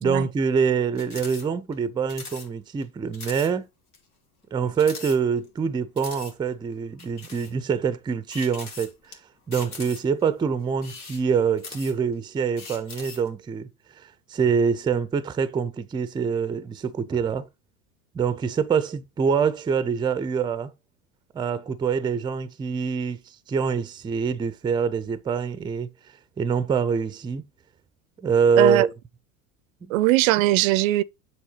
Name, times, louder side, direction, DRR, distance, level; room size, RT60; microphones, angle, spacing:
voice 1, 0.0-3.6 4.5-9.2 9.5-13.7 13.9-17.5 18.1-20.7 21.3-25.9 26.4-27.4 28.2-28.9 29.8-29.9, right 6 dB, 10° right, 0.4 m, -25 dB
sound 1, 0.9-1.4 1.7-1.8 2.1-2.5 2.8-2.9 3.1-3.5 3.9-4.0 4.7-5.6 6.0-6.3 7.0-7.5 8.3-9.1 9.5-10.2 10.7-12.1 12.6-13.3, left 4 dB, 85° left, 1.9 m, -40 dB
voice 2, 29.9-31.0, right 17 dB, 65° right, 0.5 m, -20 dB
7.6 x 3.1 x 5.6 m
hypercardioid pair, 85°, 44 cm